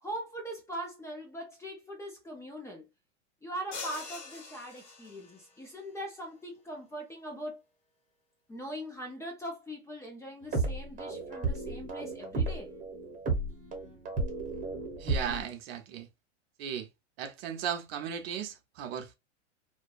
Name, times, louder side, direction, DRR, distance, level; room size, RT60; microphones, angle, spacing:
voice 1, 0.0-2.9 3.4-7.6 8.5-12.7, equal, 10° left, 0.5 m, -41 dB
sound 1, 3.7-5.5, left 4 dB, 40° left, 1.3 m, -43 dB
sound 2, 10.4-15.4, right 3 dB, 20° right, 1.0 m, -33 dB
voice 2, 15.0-16.1 16.6-16.9 17.2-19.2, right 8 dB, 55° right, 0.7 m, -36 dB
2.6 x 2.2 x 2.3 m
hypercardioid pair, 120°, 36 cm